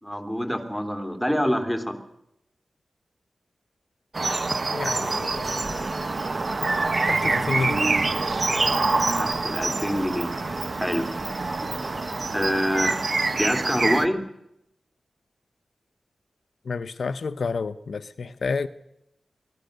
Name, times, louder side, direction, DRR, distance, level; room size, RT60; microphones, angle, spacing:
voice 1, 0.0-2.0 9.2-10.3 10.8-11.1 11.6-11.7 12.3-13.0 13.3-14.2, equal, ahead, 6 dB, 3.0 m, -26 dB
sound 1, 4.1-14.1, right 3 dB, 45° right, 1.0 m, -26 dB
voice 2, 4.7-6.1 7.1-7.8 16.6-18.7, left 4 dB, 70° left, 11 dB, 0.7 m, -30 dB
Insect, 5.2-12.6, right 1 dB, 25° right, 3.3 m, -41 dB
23.5 x 16.5 x 6.7 m, 0.81 s
wide cardioid pair, 85°, 0 cm